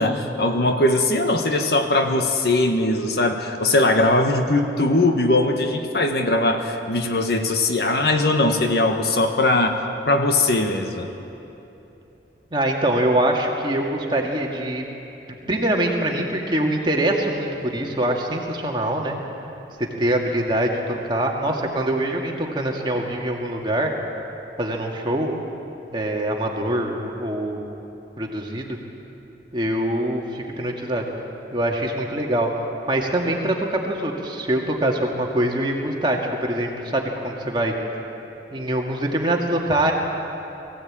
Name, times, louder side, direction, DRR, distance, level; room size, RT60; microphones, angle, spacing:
voice 1, 0.0-9.8 10.0-11.1, left 2 dB, 60° left, 5 dB, 1.5 m, -20 dB
voice 2, 12.5-14.9 15.3-19.2 19.8-23.9 24.6-25.4 25.9-27.7 28.2-28.8 29.5-31.0 31.5-32.6 32.9-37.7 38.5-39.9, right 1 dB, 25° right, 0 dB, 2.1 m, -24 dB
22.5 x 15.5 x 8.8 m, 2.9 s
head